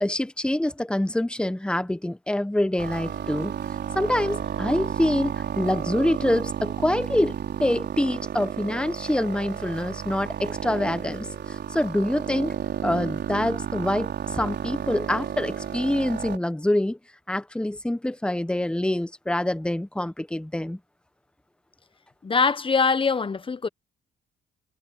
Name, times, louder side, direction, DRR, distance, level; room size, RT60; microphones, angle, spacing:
voice 1, 0.0-3.5 3.9-12.5 12.8-17.0 17.3-20.8, left 1 dB, 5° left, 1.3 m, -26 dB
sound 1, 2.8-16.4, right 8 dB, 60° right, 4.2 m, -32 dB
voice 2, 22.2-23.7, left 5 dB, 25° left, 1.1 m, -23 dB
cardioid pair, 90°, 20 cm